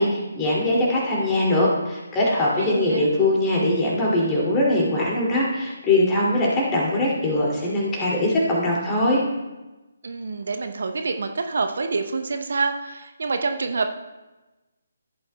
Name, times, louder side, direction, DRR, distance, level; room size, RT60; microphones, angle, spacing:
voice 1, 0.0-9.2, left 1 dB, 15° left, -4 dB, 2.4 m, -21 dB
voice 2, 2.6-3.1 10.0-13.9, right 4 dB, 55° right, 6 dB, 0.7 m, -27 dB
15.0 x 8.5 x 2.2 m, 1.1 s
figure-of-eight pair, 145°, 0 cm